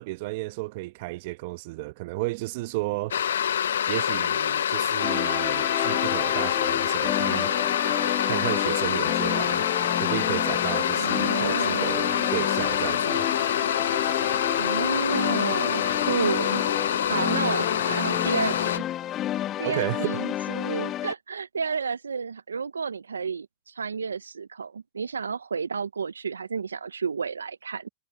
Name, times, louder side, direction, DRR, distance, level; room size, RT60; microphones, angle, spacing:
voice 1, 0.0-3.2 3.9-7.5 8.3-9.7 10.0-13.3 19.6-20.2, right 21 dB, 55° right, 0.9 m, -33 dB
sound 1, 3.1-18.8, left 9 dB, 80° left, 0.6 m, -26 dB
sound 2, 5.0-21.1, left 12 dB, 35° left, 0.3 m, -31 dB
voice 2, 10.9-12.3 14.6-16.6 17.1-18.8 19.6-27.9, right 5 dB, 90° right, 0.5 m, -31 dB
hypercardioid pair, 105°, 0 cm